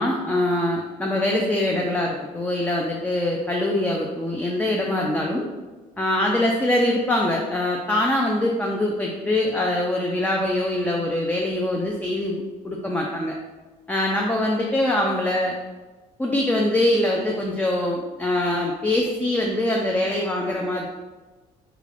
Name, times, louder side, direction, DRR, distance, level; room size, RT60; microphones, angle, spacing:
voice 1, 0.0-5.4 6.0-13.4 13.9-15.5 16.2-20.9, left 1 dB, 10° left, -1 dB, 0.3 m, -23 dB
3.5 x 2.4 x 3.3 m, 1.2 s
cardioid pair, 110°, 17 cm